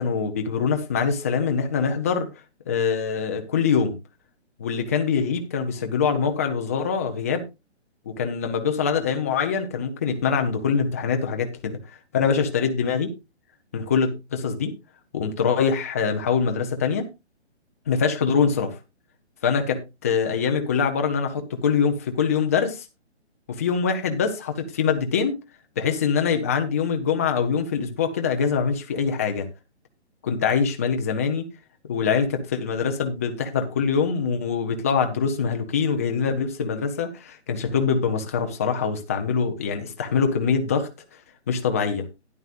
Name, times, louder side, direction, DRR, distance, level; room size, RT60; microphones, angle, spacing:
voice 1, 0.0-2.3 2.7-3.9 4.6-7.5 8.1-11.7 12.1-13.1 13.7-14.7 15.1-17.1 17.9-18.8 19.4-22.9 23.5-25.3 25.8-29.5 30.2-31.5 31.8-40.9 41.5-42.1, left 6 dB, 15° left, 0.6 m, -24 dB
13.0 x 10.5 x 2.5 m
hypercardioid pair, 165°, 35 cm